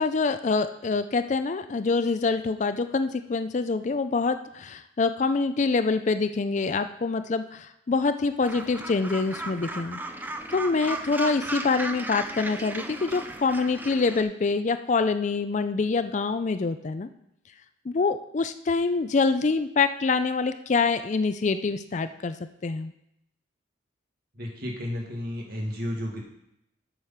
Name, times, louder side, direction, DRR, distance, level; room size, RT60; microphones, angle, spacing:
voice 1, 0.0-10.0 10.5-17.1 17.9-22.4 22.6-22.9, left 4 dB, 40° left, 11 dB, 0.4 m, -25 dB
Gull seagull, 8.4-14.2, right 2 dB, 10° right, 0.5 m, -35 dB
voice 2, 24.3-26.2, left 1 dB, 55° right, 0 dB, 2.0 m, -32 dB
7.8 x 6.6 x 5.6 m, 0.81 s
head